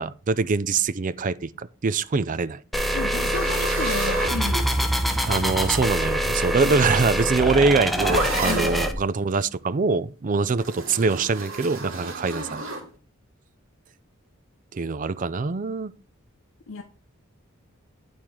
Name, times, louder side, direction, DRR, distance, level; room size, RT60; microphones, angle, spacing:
voice 1, 0.0-2.6 5.3-12.6 14.7-15.9, right 4 dB, 40° right, 0.4 m, -24 dB
sound 1, 2.7-8.9, equal, ahead, 0.7 m, -24 dB
voice 2, 2.9-4.7 8.4-8.8 16.7-16.8, left 3 dB, 65° left, 0.7 m, -32 dB
sound 2, 3.2-5.0 6.2-8.8 10.6-12.9, right 2 dB, 65° right, 2.7 m, -32 dB
9.0 x 4.4 x 4.8 m
head